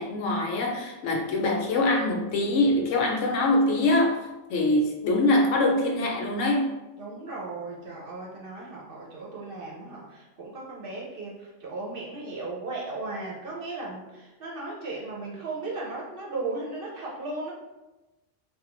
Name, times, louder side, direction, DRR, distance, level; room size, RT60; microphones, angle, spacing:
voice 1, 0.0-4.2 4.5-6.7, left 2 dB, 75° left, 1 dB, 0.9 m, -24 dB
voice 2, 7.0-17.5, right 3 dB, 55° right, -3 dB, 0.7 m, -36 dB
3.4 x 2.3 x 2.9 m, 1.0 s
omnidirectional pair, 1.3 m